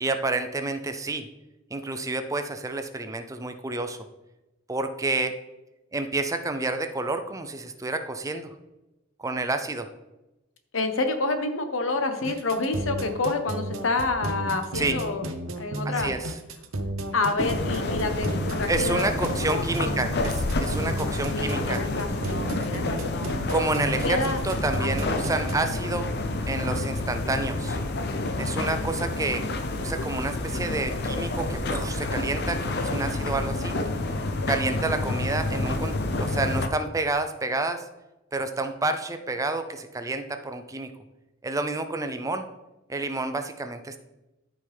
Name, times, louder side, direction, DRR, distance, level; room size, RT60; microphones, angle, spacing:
voice 1, 0.0-1.3 1.7-4.1 4.7-5.4 5.9-8.5 9.2-9.9 14.7-15.0 15.8-16.3 18.7-21.8 23.5-26.1 26.5-27.8 28.4-29.4 29.8-33.8 34.5-37.8 38.3-40.9 41.4-42.5 42.9-44.0, right 2 dB, 15° right, 8 dB, 0.5 m, -29 dB
voice 2, 10.7-15.2 15.6-16.1 17.1-19.9 21.3-23.4 24.0-24.4 24.8-25.2, left 3 dB, 70° left, 6 dB, 1.1 m, -28 dB
sound 1, 12.2-25.5, right 1 dB, 80° right, 0.9 m, -33 dB
sound 2, 17.4-36.7, left 2 dB, 55° left, 0.8 m, -29 dB
13.0 x 5.4 x 3.5 m, 0.99 s
head